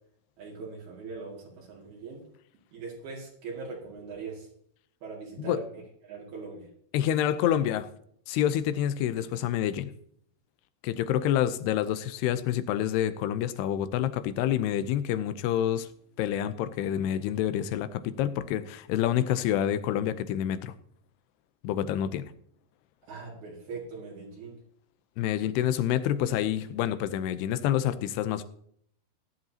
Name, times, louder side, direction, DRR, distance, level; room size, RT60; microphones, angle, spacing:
voice 1, 0.4-2.2 2.7-4.5 5.0-6.7 23.1-24.6, right 4 dB, 70° right, -4 dB, 4.2 m, -41 dB
voice 2, 6.9-7.9 8.3-9.9 10.8-15.9 16.2-20.7 21.6-22.3 25.2-28.4, left 11 dB, 85° left, 13 dB, 2.8 m, -27 dB
17.0 x 10.5 x 2.8 m, 0.65 s
omnidirectional pair, 4.6 m